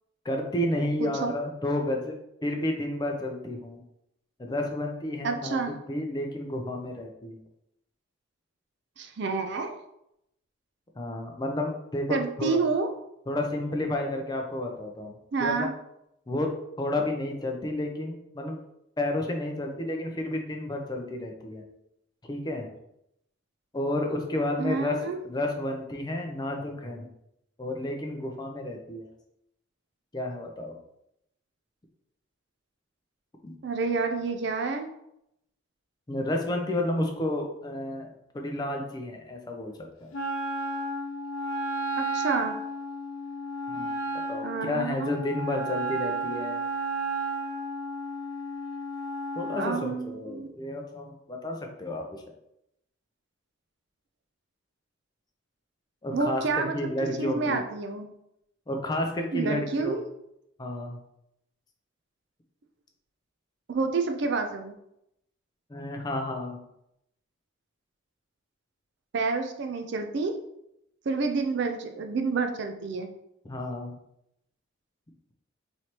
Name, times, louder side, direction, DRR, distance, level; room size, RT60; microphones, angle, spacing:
voice 1, 0.2-3.8 4.4-5.6 5.9-7.4 11.0-12.6 13.3-15.7 16.3-16.5 16.8-18.6 19.0-21.6 22.2-22.7 23.7-27.1 27.6-29.1 30.1-30.8 33.4-33.5 36.1-39.7 40.0-40.1 43.7-43.9 44.3-46.6 49.4-52.2 56.0-57.6 58.7-60.0 60.6-61.0 65.7-66.6 73.4-73.9, left 1 dB, 20° left, 2 dB, 0.5 m, -31 dB
voice 2, 1.0-1.3 5.2-5.7 9.0-9.7 12.1-12.9 15.3-15.7 24.6-25.2 33.6-34.9 42.0-42.6 44.4-45.2 49.6-50.5 56.1-56.9 57.2-58.1 59.3-60.0 63.7-64.7 69.1-70.3 71.1-73.1, right 4 dB, 55° right, 5 dB, 0.4 m, -29 dB
Wind instrument woodwind instrument, 40.1-49.7, right 2 dB, 75° left, 0.7 m, -33 dB
4.3 x 3.2 x 2.9 m, 0.80 s
head